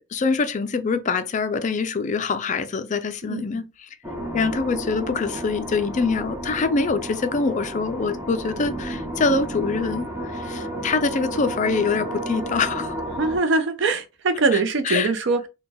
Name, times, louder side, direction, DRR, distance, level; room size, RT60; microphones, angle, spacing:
voice 1, 0.0-3.6 4.3-13.0 14.8-15.1, left 4 dB, 40° left, 0.4 m, -24 dB
sound 1, 4.0-13.4, right 1 dB, 10° right, 0.9 m, -32 dB
voice 2, 13.2-15.5, right 3 dB, 65° right, 0.5 m, -22 dB
4.1 x 2.2 x 3.4 m
head